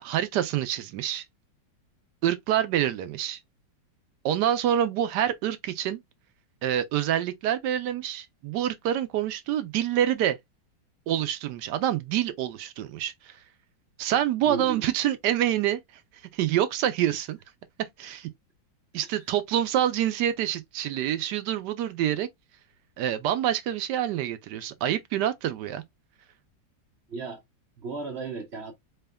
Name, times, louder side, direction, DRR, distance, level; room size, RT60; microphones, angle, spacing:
voice 1, 0.0-1.2 2.2-3.4 4.2-6.0 6.6-10.4 11.1-13.3 14.0-15.8 16.3-17.4 18.0-18.3 18.9-22.3 23.0-25.8, right 11 dB, 75° right, 1.1 m, -26 dB
voice 2, 14.5-14.9 19.0-19.1 27.1-27.4 27.8-28.7, right 4 dB, 50° right, 0.8 m, -35 dB
4.3 x 3.4 x 2.2 m
omnidirectional pair, 2.0 m